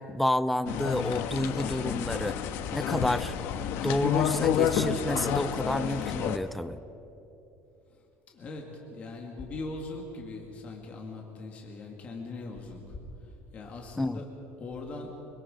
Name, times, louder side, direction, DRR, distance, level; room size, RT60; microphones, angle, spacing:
voice 1, 0.0-2.4 2.7-3.3 3.8-6.8 14.0-14.2, left 1 dB, ahead, 16 dB, 0.4 m, -30 dB
sound 1, 0.7-6.4, left 9 dB, 55° left, 1.1 m, -29 dB
voice 2, 8.3-8.6 8.9-13.0 13.5-14.3 14.6-15.1, left 3 dB, 30° left, 0 dB, 2.1 m, -40 dB
25.5 x 24.0 x 5.0 m, 3.0 s
cardioid pair, 180°, 5 cm